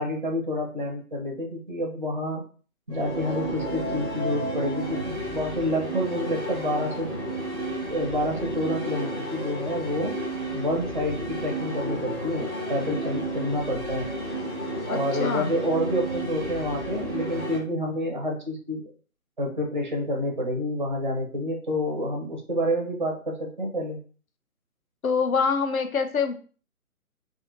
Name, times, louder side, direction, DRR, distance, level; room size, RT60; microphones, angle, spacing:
voice 1, 0.0-2.4 2.9-7.1 7.9-10.2 10.5-14.1 14.9-18.9 19.4-24.0, equal, 35° right, 0 dB, 0.4 m, -28 dB
sound 1, 2.9-17.6, right 1 dB, 15° left, 0.6 m, -32 dB
voice 2, 14.9-15.5 25.0-26.3, left 5 dB, 70° left, 7 dB, 0.6 m, -25 dB
2.5 x 2.4 x 2.6 m, 0.39 s
figure-of-eight pair, 145°, 44 cm